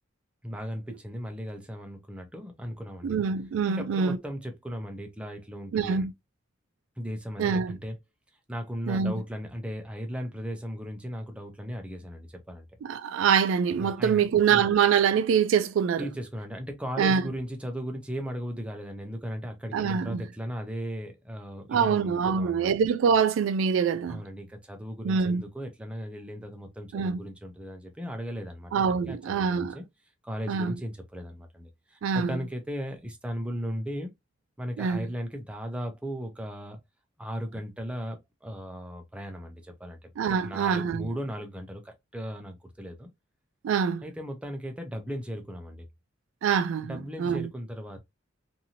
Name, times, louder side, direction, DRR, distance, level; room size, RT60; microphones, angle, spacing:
voice 1, 0.4-3.2 3.7-6.1 7.0-8.0 8.5-12.7 13.8-14.3 16.0-22.7 24.1-29.8 30.2-34.1 34.6-36.8 37.2-43.1 44.0-45.9 46.8-48.0, equal, 5° right, 0.5 m, -37 dB
voice 2, 3.0-4.2 5.7-6.1 7.4-7.8 8.9-9.1 12.8-16.1 17.0-17.2 19.7-20.2 21.7-24.2 25.0-25.4 26.9-27.2 28.7-29.8 30.5-30.7 32.0-32.4 34.8-35.1 40.2-41.1 43.6-44.0 46.4-47.5, right 6 dB, 70° right, 0.3 m, -25 dB
2.6 x 2.6 x 2.7 m
head